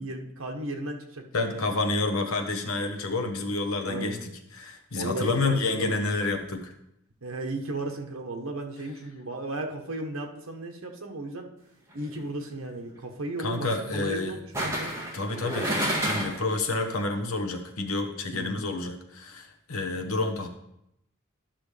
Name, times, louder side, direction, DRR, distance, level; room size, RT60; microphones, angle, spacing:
voice 1, 0.0-1.7 3.9-4.2 4.9-6.1 7.2-11.5 11.9-14.9 18.3-18.6, right 2 dB, 70° right, 3 dB, 1.1 m, -35 dB
voice 2, 1.3-6.7 13.4-14.4 15.1-20.5, left 3 dB, 80° left, 5 dB, 1.0 m, -29 dB
sound 1, 11.9-12.2 14.5-16.5 16.9-17.0, equal, 15° right, 1.6 m, -29 dB
11.5 x 5.9 x 3.3 m, 0.79 s
head